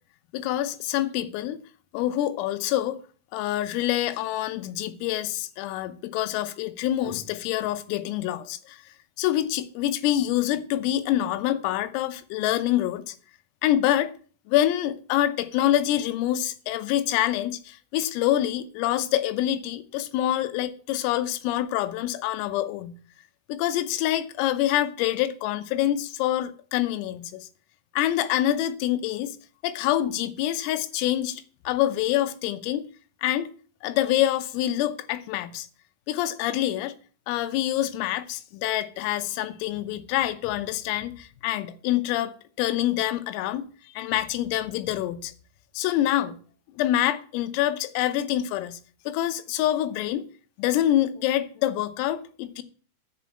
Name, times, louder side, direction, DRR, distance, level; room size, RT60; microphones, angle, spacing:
voice 1, 0.3-1.6 1.9-3.0 3.3-8.8 9.2-13.2 13.6-14.1 14.5-23.0 23.5-27.5 27.9-29.4 29.6-32.9 33.2-33.5 33.8-35.7 36.1-36.9 37.3-43.7 44.0-45.3 45.8-46.4 46.8-48.8 49.1-50.3 50.6-52.6, left 13 dB, 85° left, 3.5 m, -26 dB
10.5 x 5.3 x 8.4 m
omnidirectional pair, 5.9 m